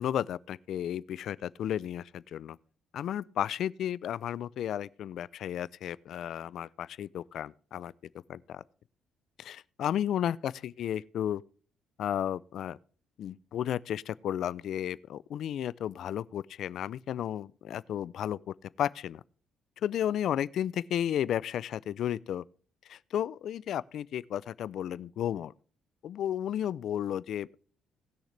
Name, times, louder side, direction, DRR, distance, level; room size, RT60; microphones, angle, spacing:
voice 1, 0.0-2.6 2.9-7.9 8.3-8.6 9.4-11.4 12.0-12.8 13.2-19.2 19.8-22.4 22.9-25.5 26.0-27.6, left 10 dB, 55° left, 0.4 m, -33 dB
19.0 x 6.5 x 3.3 m
cardioid pair, 165°, 0 cm